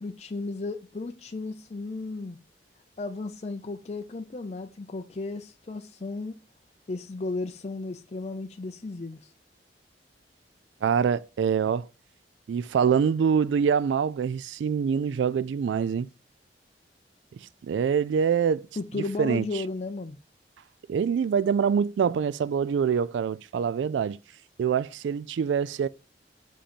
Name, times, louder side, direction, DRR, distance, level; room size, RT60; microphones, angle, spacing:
voice 1, 0.0-2.4 3.0-6.4 6.9-9.3 18.8-20.2, left 3 dB, 35° left, 0.5 m, -34 dB
voice 2, 10.8-11.9 12.5-16.1 17.4-18.7 18.9-19.4 20.9-24.2 24.6-25.9, right 7 dB, 90° right, 0.3 m, -25 dB
5.7 x 5.2 x 6.7 m
head